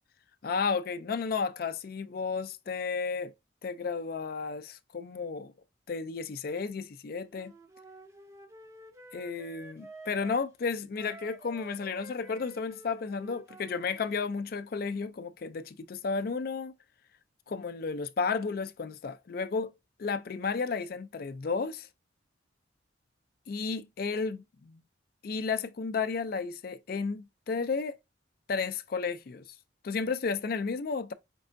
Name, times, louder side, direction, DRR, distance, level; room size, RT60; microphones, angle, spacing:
voice 1, 0.4-3.3 3.6-5.5 5.9-7.5 9.1-16.7 17.5-19.7 20.0-21.9 23.5-24.8 25.2-28.0 28.5-29.4 29.8-31.1, left 5 dB, 50° left, 0.4 m, -33 dB
Wind instrument woodwind instrument, 7.3-10.5 10.9-14.3, right 1 dB, 15° right, 0.5 m, -50 dB
5.3 x 3.3 x 2.5 m
head